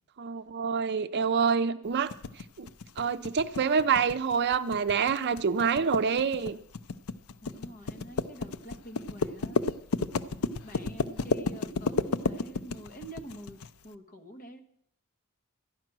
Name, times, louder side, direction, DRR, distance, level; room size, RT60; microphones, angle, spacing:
voice 1, 0.2-2.1 2.6-2.7 3.0-6.6, right 6 dB, 50° right, 11 dB, 0.5 m, -27 dB
sound 1, 2.1-13.7, left 4 dB, 70° left, 0.5 m, -32 dB
voice 2, 7.4-9.7 10.6-13.6 13.8-14.6, right 1 dB, 40° left, 4 dB, 1.3 m, -46 dB
13.5 x 10.0 x 6.0 m, 0.71 s
head